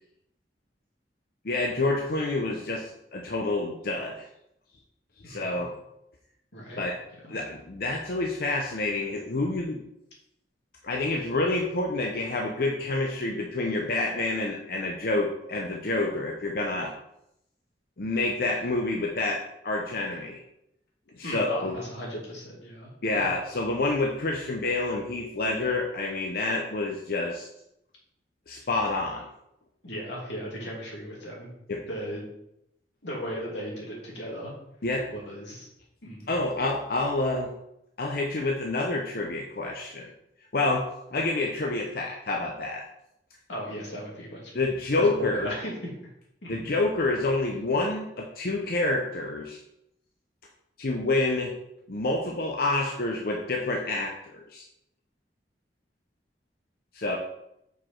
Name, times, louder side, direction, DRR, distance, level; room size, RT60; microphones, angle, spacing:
voice 1, 1.4-4.3 5.3-5.7 6.8-6.9 7.3-9.8 10.8-16.9 18.0-20.4 21.2-21.7 23.0-27.5 28.5-29.3 31.7-31.8 34.8-35.0 36.3-37.5 38.0-40.1 40.5-40.8 41.1-42.8 44.5-45.5 46.5-49.6 50.8-51.5 51.9-54.6 56.9-57.2, left 2 dB, 60° left, 0 dB, 0.7 m, -28 dB
voice 2, 5.2-5.7 6.5-6.8 7.2-7.3 21.2-23.3 29.8-31.5 31.9-32.2 33.0-34.5 35.1-35.7 36.0-36.3 43.5-44.5 44.9-45.9 46.4-46.7, equal, 90° left, -3 dB, 2.6 m, -37 dB
6.5 x 4.9 x 4.5 m, 0.81 s
head